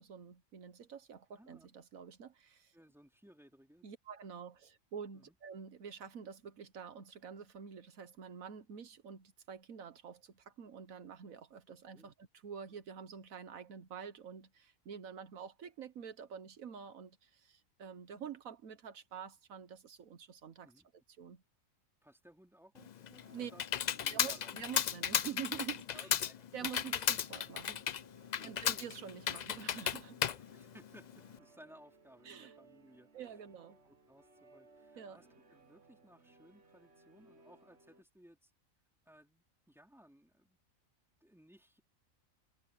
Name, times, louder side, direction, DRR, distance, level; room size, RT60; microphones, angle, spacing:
voice 1, 0.0-2.8 3.8-20.7 21.2-21.4 23.3-23.5 24.1-26.1 26.5-27.8 28.4-30.3 32.2-32.5 33.1-33.8 35.0-35.2, right 7 dB, 75° right, 1.5 m, -47 dB
voice 2, 1.4-1.7 2.7-3.9 5.1-5.3 11.7-12.1 20.6-20.9 22.0-24.6 25.9-26.5 28.4-28.9 30.4-33.4 33.8-38.5 39.0-40.6 41.2-41.8, equal, ahead, 3.5 m, -61 dB
Computer keyboard, 22.8-31.4, left 9 dB, 80° left, 0.3 m, -35 dB
sound 1, 23.1-26.3 27.1-38.0, right 1 dB, 50° right, 2.1 m, -63 dB
omnidirectional pair, 1.4 m